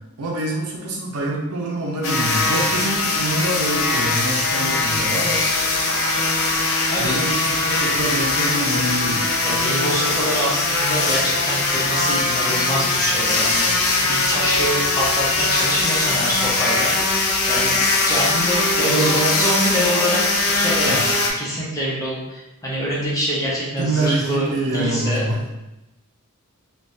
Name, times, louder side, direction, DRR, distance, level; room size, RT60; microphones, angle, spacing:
voice 1, 0.2-5.4 7.0-9.3 18.8-19.4 20.8-21.0 23.8-25.5, right 1 dB, 75° right, -2 dB, 0.7 m, -25 dB
sound 1, 2.0-21.3, left 3 dB, 65° left, 0.5 m, -21 dB
voice 2, 9.4-16.9 17.5-17.8 18.0-25.5, equal, 15° left, -6 dB, 0.8 m, -25 dB
3.4 x 2.3 x 2.6 m, 0.95 s
head